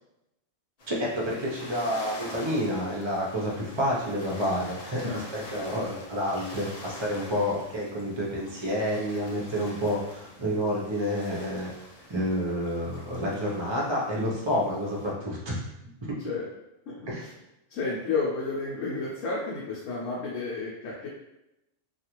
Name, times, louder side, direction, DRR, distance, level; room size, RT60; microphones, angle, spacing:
sound 1, 0.8-15.1, left 1 dB, 60° left, 0.4 m, -46 dB
voice 1, 0.9-11.7 12.1-15.6 16.0-16.2 17.1-17.3, equal, 35° right, -4 dB, 0.4 m, -29 dB
voice 2, 5.0-5.7 16.2-16.5 16.9-17.0 17.7-21.1, left 4 dB, 80° left, -5 dB, 1.0 m, -31 dB
2.4 x 2.4 x 2.9 m, 0.88 s
omnidirectional pair, 1.3 m